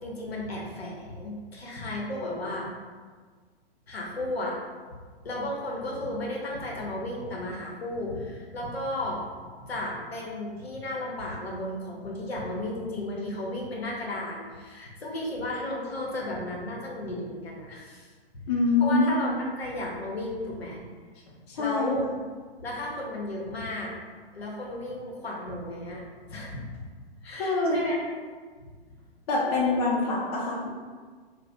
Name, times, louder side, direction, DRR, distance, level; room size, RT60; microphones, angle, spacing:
voice 1, 0.0-2.7 3.9-4.6 4.9-5.0 5.2-9.2 9.6-18.1 18.3-18.5 18.8-19.3 19.6-20.8 21.6-22.0 22.6-23.9 24.3-26.0 26.3-26.8 27.2-28.0 28.6-28.7 29.4-29.6, left 1 dB, 75° left, -3 dB, 0.9 m, -34 dB
voice 2, 18.5-19.1 21.5-21.9 27.3-27.8 29.3-30.7, left 3 dB, 40° left, -4 dB, 0.7 m, -25 dB
2.7 x 2.2 x 3.4 m, 1.5 s
figure-of-eight pair, 120°, 31 cm